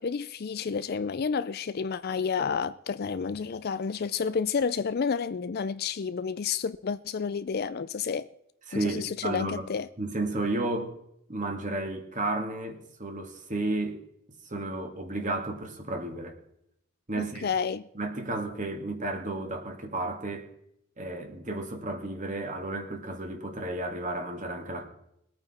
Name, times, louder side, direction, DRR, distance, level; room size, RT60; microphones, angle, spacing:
voice 1, 0.0-8.3 8.7-9.9 17.2-17.8, left 6 dB, 50° left, 0.4 m, -30 dB
voice 2, 8.7-9.7 10.0-10.9 11.3-14.0 14.5-16.4 17.1-17.5 17.9-20.5 21.0-24.9, right 2 dB, 35° right, 2.0 m, -32 dB
21.0 x 8.8 x 4.3 m
head